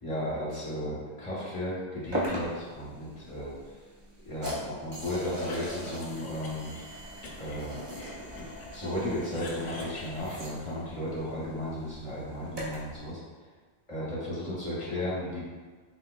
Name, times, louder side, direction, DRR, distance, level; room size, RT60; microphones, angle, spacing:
voice 1, 0.0-3.5 4.2-6.7 7.4-8.1 8.3-13.2 13.9-15.4, left 1 dB, 30° left, -9 dB, 0.9 m, -34 dB
sound 1, 2.1-13.0, equal, 35° right, 0.4 m, -40 dB
Cough, 5.3-6.8 7.2-8.7 9.0-10.9, left 3 dB, 90° left, 0.9 m, -46 dB
3.4 x 2.8 x 2.2 m, 1.5 s
omnidirectional pair, 1.2 m